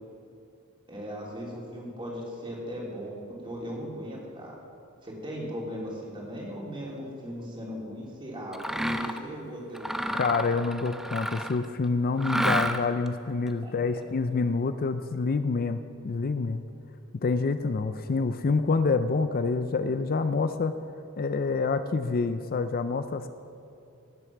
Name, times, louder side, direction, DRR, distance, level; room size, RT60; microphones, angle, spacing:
voice 1, 0.9-4.6 5.0-10.2 13.6-14.0, equal, 25° right, -3 dB, 3.2 m, -38 dB
Mechanisms, 8.5-9.2 9.7-11.7 12.2-13.1, equal, ahead, 0.6 m, -30 dB
voice 2, 10.2-15.8 16.0-16.6 17.2-20.7 21.2-23.3, left 4 dB, 45° left, 10 dB, 0.5 m, -27 dB
18.0 x 7.9 x 6.0 m, 2.7 s
head